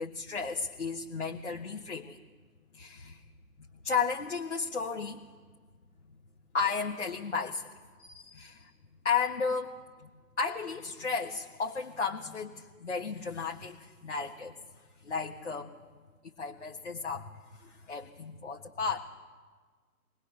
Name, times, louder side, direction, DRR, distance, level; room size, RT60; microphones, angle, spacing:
voice 1, 0.0-2.2 2.7-3.2 3.8-5.2 6.5-7.7 8.0-8.7 9.0-9.7 10.0-10.1 10.4-14.6 15.0-15.7 16.4-19.1, left 5 dB, 50° left, -1 dB, 1.7 m, -34 dB
22.5 x 19.5 x 6.9 m, 1.5 s
figure-of-eight pair, 150°, 45 cm